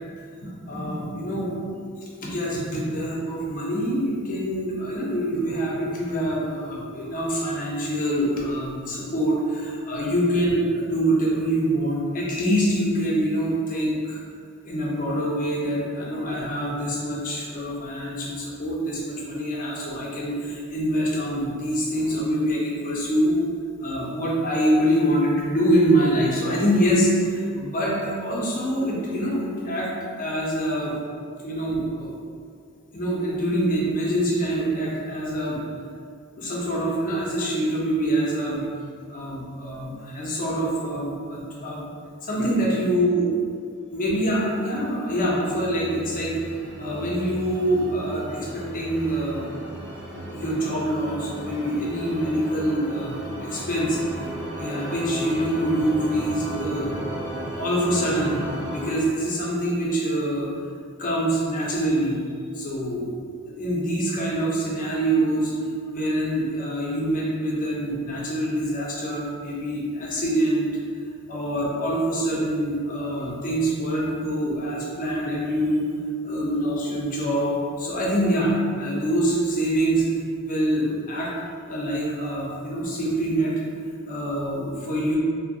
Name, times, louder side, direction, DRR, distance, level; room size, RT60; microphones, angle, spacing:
voice 1, 0.4-1.7 2.2-14.2 14.6-23.4 23.8-29.9 30.2-31.0 31.4-32.2 32.9-35.6 36.4-38.7 39.1-41.8 42.2-43.3 43.9-46.3 46.8-49.5 49.7-49.8 50.3-54.3 54.6-56.9 57.5-58.4 58.7-60.5 61.0-62.2 62.5-63.0 63.5-65.5 65.9-70.7 71.3-75.9 76.2-80.0 80.4-81.3 81.7-83.6 84.1-85.2, right 1 dB, 40° left, -5 dB, 0.5 m, -25 dB
sound 1, 44.6-59.0, right 1 dB, 20° right, 1.0 m, -35 dB
2.6 x 2.1 x 2.5 m, 2.2 s
head